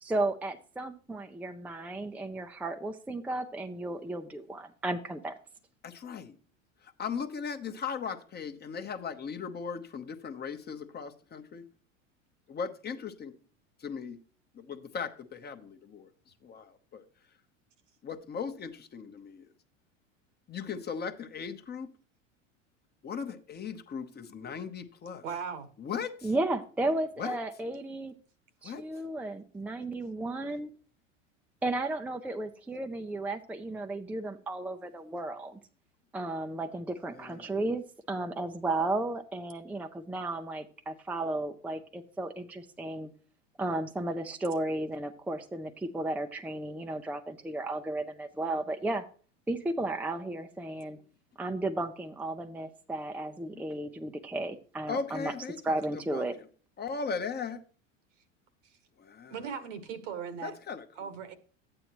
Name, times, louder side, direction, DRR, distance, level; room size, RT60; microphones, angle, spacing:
voice 1, 0.0-5.3 26.2-28.1 28.6-30.7 31.6-35.6 36.1-37.8 38.1-43.1 43.6-49.1 49.5-51.0 51.4-55.3 55.6-56.4, right 2 dB, 5° right, 0.6 m, -34 dB
voice 2, 5.8-6.3 7.0-11.6 12.5-13.3 13.8-14.2 14.6-16.1 16.4-17.0 18.0-19.4 20.5-21.9 23.0-25.2 25.8-26.3 27.2-27.4 28.6-28.8 37.1-37.5 53.5-53.6 54.9-55.7 56.1-56.3 56.8-57.6 59.0-59.5 60.4-60.8, left 6 dB, 25° left, 1.0 m, -38 dB
voice 3, 25.2-25.7 59.3-60.6 61.0-61.3, right 7 dB, 70° right, 1.7 m, -38 dB
12.0 x 8.9 x 3.0 m
hypercardioid pair, 90°, 39 cm